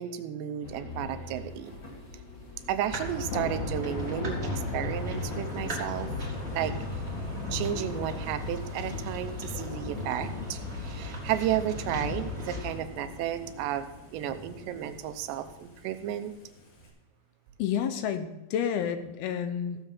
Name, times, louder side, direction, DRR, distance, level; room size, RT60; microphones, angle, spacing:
voice 1, 0.0-1.7 2.7-6.1 6.5-6.7 7.5-16.3, right 11 dB, 90° right, 10 dB, 3.0 m, -33 dB
sound 1, 0.6-15.8, left 3 dB, 35° left, 2.7 m, -45 dB
sound 2, 2.8-12.8, left 2 dB, 25° right, 1.6 m, -38 dB
Thunder / Rain, 2.9-16.9, left 1 dB, 60° left, 3.6 m, -39 dB
voice 2, 17.6-19.8, left 8 dB, 75° left, 9 dB, 2.6 m, -30 dB
16.0 x 7.3 x 5.5 m, 0.96 s
omnidirectional pair, 4.9 m